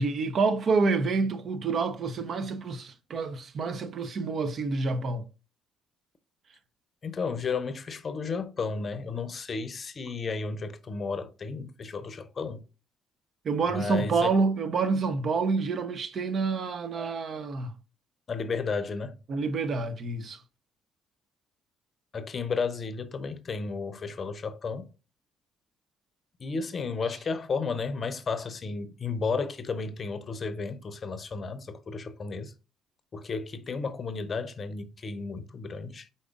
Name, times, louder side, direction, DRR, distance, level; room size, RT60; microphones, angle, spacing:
voice 1, 0.0-5.2 13.4-17.7 19.3-20.4, right 4 dB, 50° right, 0.6 m, -28 dB
voice 2, 7.0-12.6 13.7-14.3 18.3-19.2 22.1-24.9 26.4-32.5 33.1-36.1, left 4 dB, 45° left, 0.6 m, -33 dB
4.9 x 4.1 x 2.4 m
hypercardioid pair, 50°, 0 cm